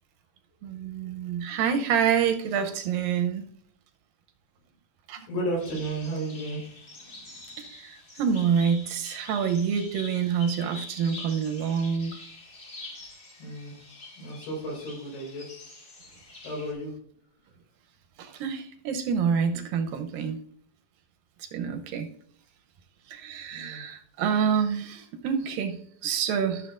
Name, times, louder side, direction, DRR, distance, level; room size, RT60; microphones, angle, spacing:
voice 1, 0.6-3.4 5.1-5.2 7.6-12.2 18.2-20.4 21.4-22.1 23.1-26.7, right 7 dB, 80° right, 6 dB, 2.4 m, -27 dB
voice 2, 5.3-6.6 6.9-7.4 13.4-13.7 14.2-15.8 16.4-16.9 23.5-23.8, right 1 dB, 75° left, -2 dB, 6.1 m, -34 dB
sound 1, 5.6-16.7, left 2 dB, 35° left, 2.0 m, -45 dB
14.0 x 7.3 x 2.5 m, 0.62 s
omnidirectional pair, 4.2 m